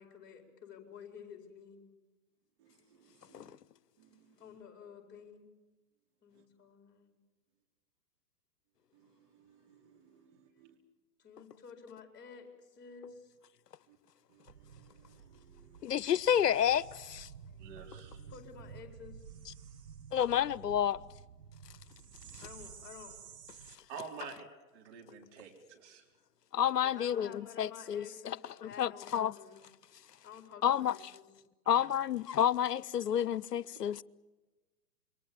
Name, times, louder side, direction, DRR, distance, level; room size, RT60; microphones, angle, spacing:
voice 1, 0.0-1.9 4.4-5.4 6.2-7.1 11.2-13.3 17.5-17.6 18.3-19.2 22.4-23.2 23.5-23.6 26.8-29.6 30.2-31.2, left 7 dB, 20° left, 4.6 m, -51 dB
voice 2, 2.6-3.6 4.0-4.4 6.3-6.4 8.9-10.8 13.9-14.0 14.3-16.0 17.6-18.3 22.2-22.3 23.9-24.5 24.7-26.0 31.6-31.9 33.7-33.8, right 6 dB, 45° right, 4.2 m, -52 dB
sound 1, 14.4-23.8, right 7 dB, 80° right, 1.5 m, -52 dB
voice 3, 15.8-17.3 20.1-21.0 26.5-28.4 28.6-29.3 30.6-30.9 31.7-34.0, left 9 dB, 80° left, 0.7 m, -30 dB
27.0 x 23.0 x 7.1 m
figure-of-eight pair, 115°, 47 cm